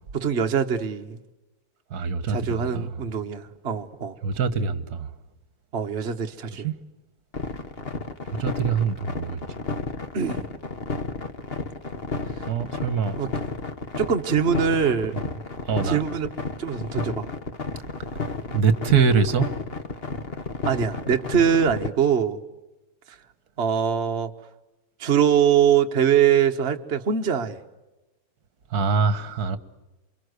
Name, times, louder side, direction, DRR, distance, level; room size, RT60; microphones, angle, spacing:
voice 1, 0.1-1.2 2.3-4.1 5.7-6.7 10.1-10.4 13.2-13.3 14.0-15.1 15.8-16.3 16.6-17.3 20.7-22.4 23.1-23.2 23.6-24.3 25.0-27.6, right 8 dB, 35° right, 1.4 m, -23 dB
voice 2, 1.9-2.9 4.2-5.1 6.5-6.7 8.4-9.4 12.4-13.2 15.1-15.2 15.7-16.0 18.5-19.5 28.7-29.6, right 6 dB, 55° right, 1.8 m, -24 dB
sound 1, 7.3-21.9, left 4 dB, 30° left, 1.7 m, -32 dB
28.5 x 24.5 x 8.1 m
omnidirectional pair, 2.1 m